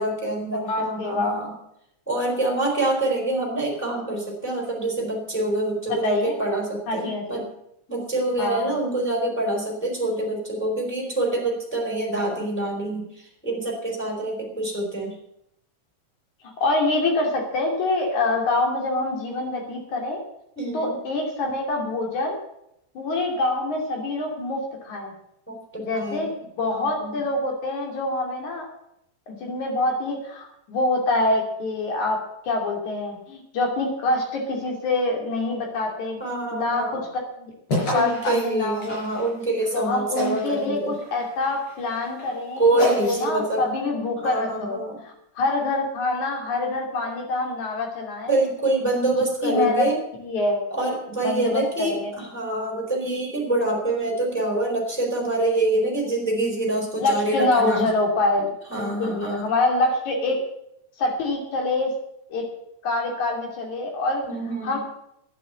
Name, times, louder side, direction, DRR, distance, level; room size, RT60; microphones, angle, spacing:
voice 1, 0.0-1.5 2.1-7.5 7.9-13.1 13.4-15.1 20.6-21.0 25.5-26.3 26.7-27.2 36.2-37.0 37.9-40.9 42.6-43.7 44.2-45.0 48.3-50.0 50.7-57.9 58.7-59.4 64.2-64.8, right 2 dB, 5° left, -1 dB, 4.2 m, -26 dB
voice 2, 0.5-1.4 5.9-6.4 6.9-7.4 8.4-8.8 16.6-20.2 20.7-22.4 23.0-25.1 25.8-26.3 26.6-28.7 29.3-32.2 32.5-36.2 36.5-37.0 37.4-37.5 37.9-39.0 39.7-44.8 45.0-48.4 49.4-49.9 50.2-50.6 51.2-52.1 57.0-58.5 58.8-60.4 61.0-61.9 62.3-62.5 62.8-64.2 64.6-64.8, left 2 dB, 75° left, 1 dB, 4.3 m, -25 dB
sound 1, 37.7-39.7 40.1-40.6 40.9-43.5, left 1 dB, 55° left, 6.2 m, -30 dB
11.5 x 9.4 x 8.2 m, 0.78 s
omnidirectional pair, 3.4 m